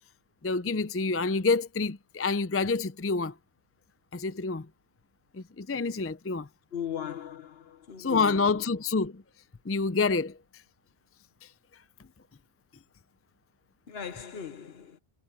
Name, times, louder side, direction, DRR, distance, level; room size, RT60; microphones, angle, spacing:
voice 1, 0.4-3.3 4.1-4.7 5.3-6.5 8.0-9.2 9.7-10.3, left 4 dB, 20° left, 0.3 m, -27 dB
voice 2, 6.7-8.6 13.9-15.0, left 9 dB, 70° left, 1.2 m, -38 dB
omnidirectional pair, 1.1 m